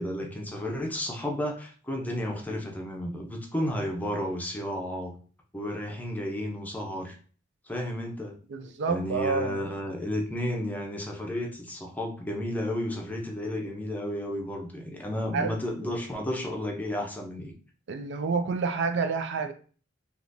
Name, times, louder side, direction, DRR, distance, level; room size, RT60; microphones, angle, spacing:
voice 1, 0.0-5.1 5.5-7.2 7.7-17.5, left 1 dB, 10° left, 0 dB, 0.6 m, -32 dB
voice 2, 8.5-9.7 15.3-15.5 15.8-15.9 17.9-19.5, right 5 dB, 60° right, 8 dB, 0.4 m, -29 dB
3.6 x 2.9 x 2.6 m, 0.40 s
head